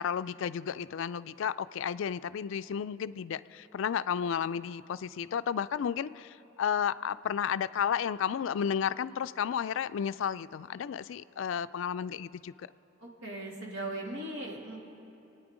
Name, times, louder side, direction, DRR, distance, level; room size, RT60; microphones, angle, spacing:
voice 1, 0.0-12.7, left 8 dB, 65° left, 15 dB, 0.3 m, -32 dB
voice 2, 13.0-14.8, right 1 dB, 85° right, -1 dB, 2.4 m, -38 dB
27.5 x 9.4 x 5.0 m, 2.8 s
head